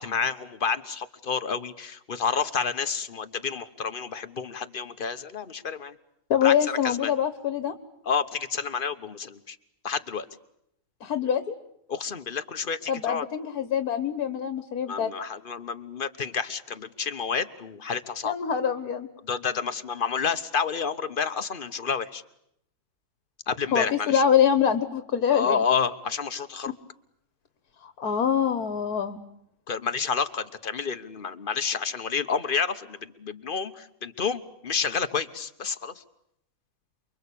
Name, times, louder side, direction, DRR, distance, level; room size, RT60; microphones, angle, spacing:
voice 1, 0.0-5.9 6.4-7.1 8.0-9.6 9.8-10.3 11.9-13.2 14.9-18.3 19.2-22.2 23.5-24.2 25.3-26.7 29.7-35.9, left 6 dB, 35° left, 10 dB, 1.3 m, -29 dB
voice 2, 6.3-7.7 11.0-11.6 12.9-15.1 18.2-19.1 23.7-25.6 27.8-29.2, left 8 dB, 70° left, 11 dB, 1.8 m, -24 dB
28.5 x 23.0 x 8.6 m, 0.77 s
omnidirectional pair, 1.7 m